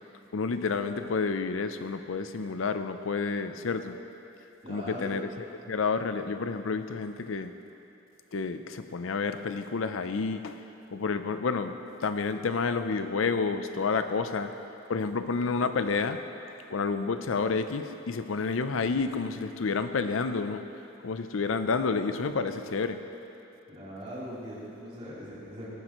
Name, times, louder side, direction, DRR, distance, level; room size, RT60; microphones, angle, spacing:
voice 1, 0.3-4.0 4.7-5.3 5.7-7.5 8.3-10.6 10.9-11.8 12.0-14.5 14.9-16.2 16.7-20.6 21.0-23.0, left 4 dB, 80° left, 9 dB, 0.5 m, -29 dB
voice 2, 4.6-5.2 23.7-25.7, equal, 30° right, -9 dB, 3.5 m, -40 dB
18.5 x 12.0 x 3.1 m, 2.8 s
head